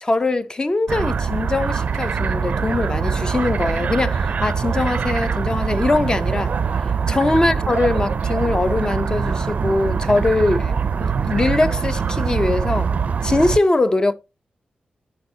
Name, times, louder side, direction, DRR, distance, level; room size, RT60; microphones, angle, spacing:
voice 1, 0.0-6.5 7.1-10.7 11.0-12.9 13.2-14.1, left 2 dB, 25° left, 0.7 m, -21 dB
sound 1, 0.9-13.6, right 6 dB, 60° right, 0.5 m, -23 dB
13.5 x 4.8 x 2.8 m
wide cardioid pair, 90°, 3 cm